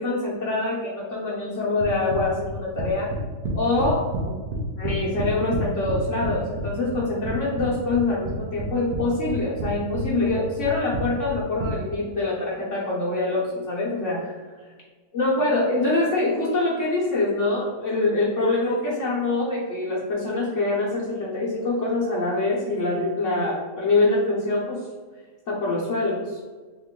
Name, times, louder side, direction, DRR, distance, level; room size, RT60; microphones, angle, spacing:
voice 1, 0.0-3.1 3.5-4.3 4.8-14.3 15.1-24.8 25.5-26.4, left 2 dB, 55° left, -6 dB, 1.0 m, -25 dB
sound 1, 1.8-4.2 4.5-6.3 6.6-7.7 7.9-9.0 9.3-9.7 9.9-11.7, right 2 dB, 70° right, 1.3 m, -29 dB
3.6 x 3.0 x 3.7 m, 1.4 s
omnidirectional pair, 1.8 m